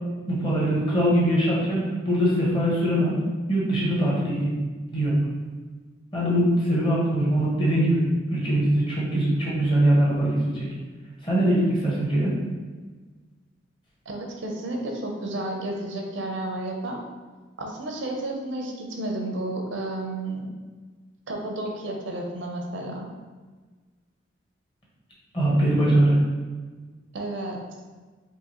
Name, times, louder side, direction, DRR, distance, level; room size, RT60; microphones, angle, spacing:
voice 1, 0.3-3.2 3.5-4.5 4.9-5.1 6.1-8.0 8.3-10.7 11.2-12.4 25.3-26.2, right 1 dB, 25° left, -6 dB, 1.1 m, -22 dB
voice 2, 14.1-17.0 17.6-20.5 21.3-23.1 27.1-27.6, right 1 dB, 75° right, 1 dB, 0.6 m, -31 dB
4.7 x 2.6 x 3.0 m, 1.4 s
head